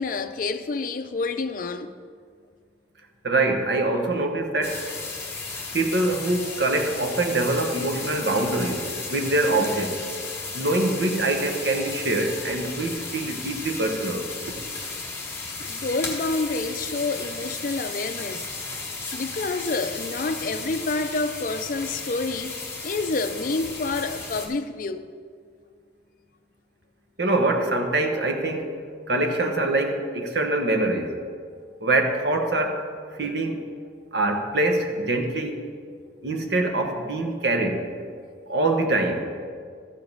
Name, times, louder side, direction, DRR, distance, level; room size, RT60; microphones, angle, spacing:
voice 1, 0.0-1.9 15.6-18.5 19.1-25.1, left 3 dB, 45° left, 0.4 m, -28 dB
voice 2, 3.2-4.9 5.7-8.8 9.1-10.0 10.5-14.3 27.2-28.8 29.1-31.2 31.8-32.9 33.2-33.6 34.1-35.6 36.2-37.8 38.5-39.3, right 2 dB, 65° right, 1.0 m, -24 dB
sound 1, 4.6-24.5, left 3 dB, 15° left, 1.2 m, -34 dB
13.5 x 5.1 x 5.4 m
head